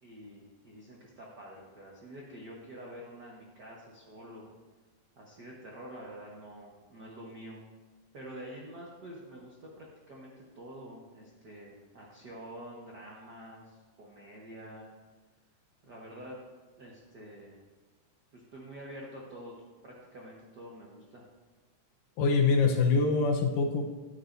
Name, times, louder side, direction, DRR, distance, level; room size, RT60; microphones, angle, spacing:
voice 1, 0.0-4.4 5.2-7.6 8.1-14.9 15.8-16.4 16.8-17.6 18.3-19.5 19.8-21.3, equal, 75° right, -3 dB, 0.9 m, -47 dB
voice 2, 22.2-23.8, left 4 dB, 75° left, 3 dB, 2.4 m, -24 dB
13.0 x 10.5 x 2.6 m, 1.3 s
omnidirectional pair, 4.0 m